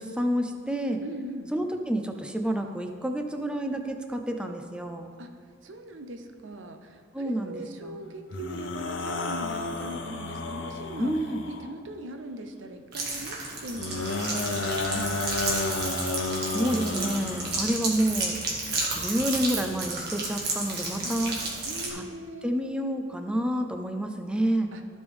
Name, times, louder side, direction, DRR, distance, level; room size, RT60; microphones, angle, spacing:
voice 1, 0.0-1.0 1.5-5.1 7.1-8.1 11.0-11.5 16.5-18.4 18.9-21.4 21.9-22.0 22.4-24.7, right 1 dB, 5° right, 5 dB, 0.5 m, -29 dB
voice 2, 1.0-1.5 5.2-5.3 5.6-11.1 11.5-15.1 21.0-21.2 21.7-22.5 24.7-24.8, right 1 dB, 75° right, 6 dB, 0.8 m, -41 dB
sound 1, 8.3-11.7 13.7-17.7, left 3 dB, 75° left, 0.8 m, -32 dB
sound 2, 12.9-21.9, right 2 dB, 55° right, 1.8 m, -32 dB
15.0 x 5.3 x 3.5 m, 2.1 s
head